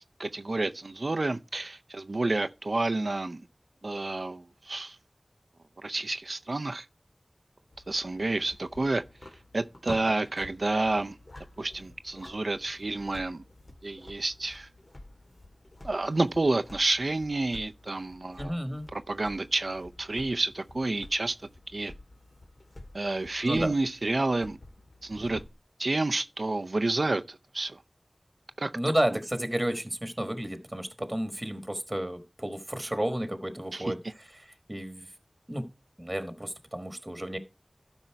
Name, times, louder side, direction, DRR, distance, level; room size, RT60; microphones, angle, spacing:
voice 1, 0.2-3.4 3.8-5.0 5.8-6.9 7.9-9.0 9.5-11.1 11.6-13.4 13.8-14.7 15.8-18.6 18.9-21.4 21.7-21.9 22.9-24.6 25.0-25.4 25.8-27.8 28.6-28.7 33.7-33.9, right 2 dB, 75° right, 0.5 m, -29 dB
sound 1, 7.7-25.5, left 1 dB, 60° left, 2.0 m, -49 dB
voice 2, 18.4-18.9 23.4-23.7 28.7-34.0 34.7-35.1 35.5-35.7 36.0-37.4, right 1 dB, 25° right, 1.4 m, -31 dB
12.5 x 5.4 x 4.5 m
wide cardioid pair, 45°, 0 cm